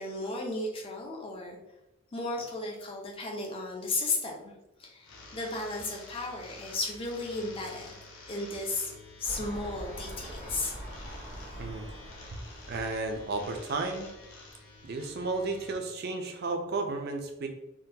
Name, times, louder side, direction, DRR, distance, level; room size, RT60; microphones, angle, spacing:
voice 1, 0.0-1.6 2.1-4.3 4.8-7.9 8.3-8.9 9.2-10.8, left 2 dB, 25° left, -1 dB, 0.5 m, -34 dB
sound 1, 5.0-15.7, left 2 dB, 80° left, 0.8 m, -49 dB
sound 2, 9.2-14.2 14.8-14.9, equal, 50° left, 1.4 m, -44 dB
voice 2, 11.6-11.9 12.3-12.4 12.7-14.1 14.8-17.5, right 3 dB, 45° right, 4 dB, 0.4 m, -33 dB
3.6 x 2.2 x 2.7 m, 0.94 s
head